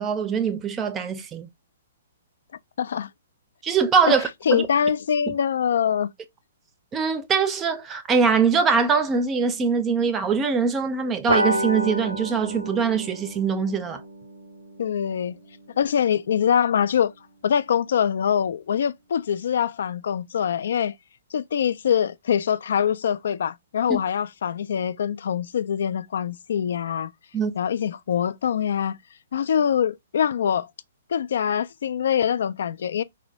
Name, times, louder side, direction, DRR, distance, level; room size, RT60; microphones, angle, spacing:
voice 1, 0.0-1.5 3.6-4.7 5.3-5.4 6.9-14.0 23.9-24.0 27.3-27.5, right 5 dB, 20° right, 0.5 m, -23 dB
voice 2, 2.8-3.1 4.5-6.1 14.8-15.4 15.8-17.1 17.4-20.9 21.3-27.1 27.6-29.0 29.3-30.7 31.1-33.0, left 8 dB, 60° left, 0.3 m, -24 dB
sound 1, 11.3-16.2, right 1 dB, 80° right, 0.7 m, -30 dB
4.4 x 2.0 x 2.7 m
figure-of-eight pair, 120°, 0 cm